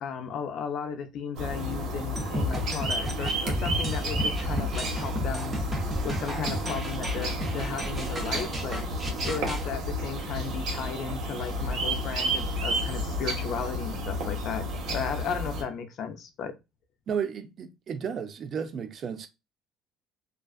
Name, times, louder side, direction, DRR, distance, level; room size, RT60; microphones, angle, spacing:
voice 1, 0.0-5.6 6.0-8.8 9.2-16.6, left 6 dB, 60° left, 0.5 m, -35 dB
sound 1, 1.4-15.6, equal, 65° right, 1.0 m, -31 dB
sound 2, 2.2-9.7, equal, 20° right, 0.8 m, -33 dB
voice 2, 17.1-19.3, right 7 dB, 50° right, 0.4 m, -33 dB
2.4 x 2.3 x 2.3 m
cardioid pair, 100°, 0 cm